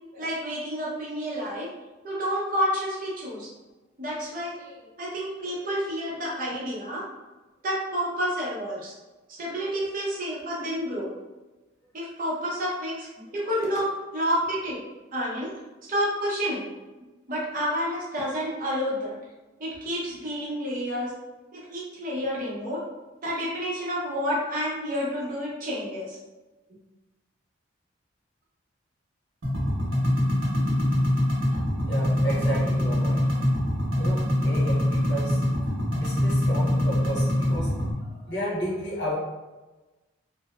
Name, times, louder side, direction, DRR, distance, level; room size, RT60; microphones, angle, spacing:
voice 1, 0.1-1.7 2.0-3.5 4.0-7.0 7.6-8.9 9.4-11.1 11.9-14.8 15.1-15.5 15.9-16.7 17.3-19.2 19.6-21.1 21.5-22.8 23.2-26.2, equal, 45° right, -5 dB, 0.6 m, -29 dB
sound 1, 29.4-37.9, left 1 dB, 75° right, 0.8 m, -24 dB
voice 2, 31.9-33.4 34.0-35.4 35.9-39.1, right 1 dB, 60° left, -6 dB, 0.9 m, -33 dB
2.6 x 2.0 x 2.3 m, 1.2 s
head